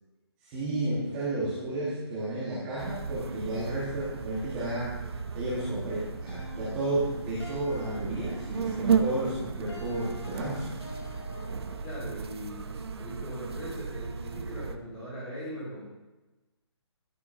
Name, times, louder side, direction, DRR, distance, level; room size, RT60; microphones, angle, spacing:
voice 1, 0.4-10.8, right 1 dB, 15° right, -9 dB, 1.4 m, -32 dB
sound 1, 2.8-14.8, right 6 dB, 65° right, 0.7 m, -34 dB
sound 2, 6.3-12.0, left 4 dB, 65° left, 2.9 m, -47 dB
voice 2, 11.8-15.9, equal, 10° left, -7 dB, 2.4 m, -40 dB
12.5 x 7.7 x 2.7 m, 1.1 s
hypercardioid pair, 175°, 15 cm